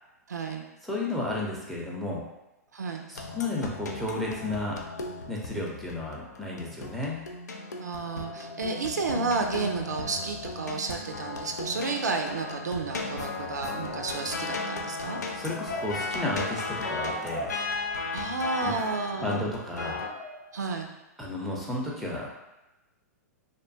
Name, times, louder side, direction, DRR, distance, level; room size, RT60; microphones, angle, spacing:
voice 1, 0.3-0.6 2.7-3.0 7.8-15.2 18.1-19.4 20.5-20.9, right 4 dB, 85° right, 3 dB, 0.4 m, -31 dB
voice 2, 0.8-2.2 3.1-4.8 5.3-7.2 15.3-17.5 18.6-18.7 19.2-20.0 21.2-22.3, left 2 dB, ahead, -3 dB, 0.6 m, -32 dB
sound 1, 3.1-20.1, left 3 dB, 85° left, 0.4 m, -36 dB
sound 2, 14.3-14.7 15.5-18.1 18.4-19.4 19.9-20.8, left 1 dB, 45° left, 0.6 m, -40 dB
2.6 x 2.2 x 2.6 m, 0.99 s
hypercardioid pair, 115°, 9 cm